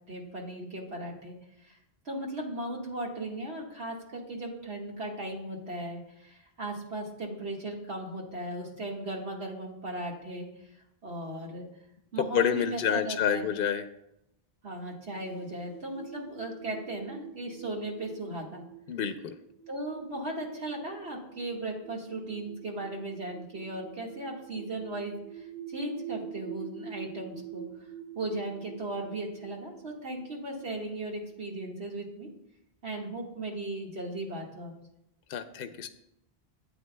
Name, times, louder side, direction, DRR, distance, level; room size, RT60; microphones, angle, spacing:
voice 1, 0.1-1.8 2.1-10.5 11.0-11.6 12.1-13.5 14.6-18.6 19.7-27.6 28.2-32.3 32.8-34.7, right 1 dB, 80° right, -1 dB, 2.0 m, -37 dB
voice 2, 12.3-13.9 18.9-19.3 35.3-35.9, left 8 dB, 65° left, 9 dB, 0.7 m, -28 dB
sound 1, 15.0-31.3, right 8 dB, 65° right, 2.8 m, -46 dB
12.5 x 8.8 x 2.2 m, 0.82 s
omnidirectional pair, 1.1 m